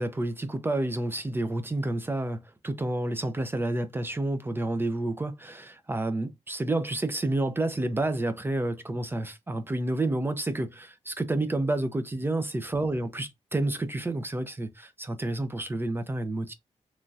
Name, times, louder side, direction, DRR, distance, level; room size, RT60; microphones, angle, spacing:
voice 1, 0.0-16.5, right 2 dB, 20° right, 0.4 m, -29 dB
3.0 x 2.6 x 2.2 m
wide cardioid pair, 140°, 12 cm